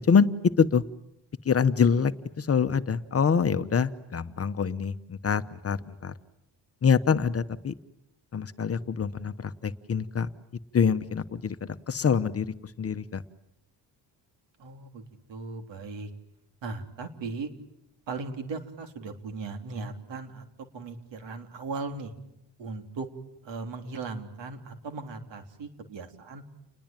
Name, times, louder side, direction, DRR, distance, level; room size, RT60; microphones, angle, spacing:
voice 1, 1.4-2.1 2.4-6.1 6.8-7.7 8.3-10.3 10.7-12.5 12.8-13.2, left 6 dB, 35° left, 11 dB, 1.0 m, -25 dB
voice 2, 14.6-15.0 15.3-16.1 16.6-17.5 18.1-20.5 20.7-22.1 22.6-23.1 23.4-26.4, right 4 dB, 80° right, 6 dB, 3.5 m, -37 dB
29.5 x 21.5 x 9.0 m, 0.83 s
wide cardioid pair, 150°, 43 cm